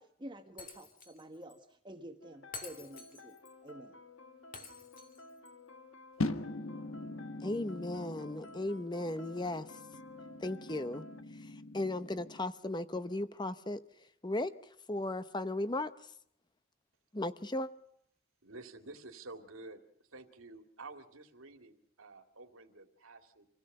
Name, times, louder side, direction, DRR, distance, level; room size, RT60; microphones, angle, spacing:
voice 1, 0.0-3.4 3.6-4.0, right 1 dB, 20° right, 6 dB, 1.3 m, -49 dB
Shatter, 0.6-1.2 1.5-1.6 2.5-3.5 4.5-5.5, left 5 dB, 45° left, 2.3 m, -49 dB
sound 1, 2.2-11.2, left 3 dB, 65° left, 1.6 m, -54 dB
sound 2, 6.2-12.4, left 2 dB, 90° left, 1.4 m, -42 dB
voice 2, 7.4-9.7 10.4-11.0 11.4-13.8 14.2-14.5 14.9-15.9 17.1-17.7, left 2 dB, 20° left, 13 dB, 0.9 m, -36 dB
voice 3, 18.4-19.8 20.1-23.5, right 3 dB, 85° right, 6 dB, 2.3 m, -50 dB
26.5 x 16.5 x 6.7 m, 0.71 s
head